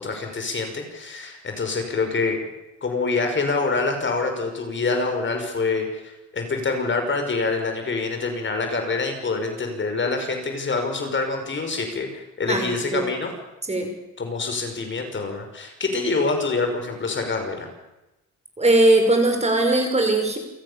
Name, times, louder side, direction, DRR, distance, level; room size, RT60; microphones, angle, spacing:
voice 1, 0.0-2.4 2.8-13.3 14.2-17.7, left 3 dB, 40° left, 5 dB, 5.7 m, -26 dB
voice 2, 12.5-13.0 13.7-13.9 18.6-20.4, right 2 dB, 20° right, 4 dB, 5.7 m, -19 dB
29.0 x 15.5 x 7.1 m, 0.98 s
cardioid pair, 90°, 30 cm